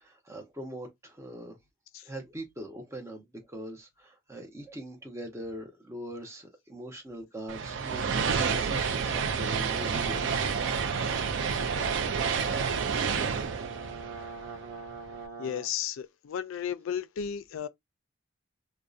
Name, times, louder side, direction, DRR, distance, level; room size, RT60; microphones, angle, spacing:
voice 1, 0.0-1.6 2.0-10.2, right 1 dB, 15° right, 0.6 m, -42 dB
sound 1, 7.5-14.9, right 6 dB, 65° right, 0.4 m, -29 dB
Brass instrument, 9.9-15.7, right 4 dB, 90° right, 0.9 m, -41 dB
voice 2, 15.4-17.7, left 8 dB, 85° left, 0.3 m, -34 dB
2.6 x 2.1 x 2.3 m
head